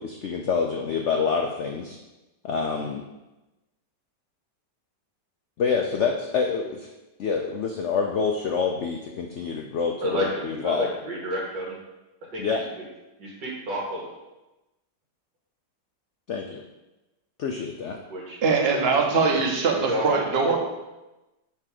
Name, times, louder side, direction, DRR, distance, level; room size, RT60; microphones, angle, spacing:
voice 1, 0.0-2.0 2.4-3.0 5.6-6.9 7.2-10.9 12.4-12.6 16.3-16.6 17.4-18.0, left 5 dB, 75° left, 2 dB, 0.6 m, -27 dB
voice 2, 10.0-11.8 12.3-12.6 13.2-14.1 18.1-18.4 18.7-18.8 19.3-19.4 19.7-20.6, equal, 90° right, -3 dB, 2.2 m, -30 dB
voice 3, 18.4-20.6, right 4 dB, 45° right, 2 dB, 0.9 m, -22 dB
4.8 x 4.4 x 5.9 m, 1.0 s
omnidirectional pair, 1.9 m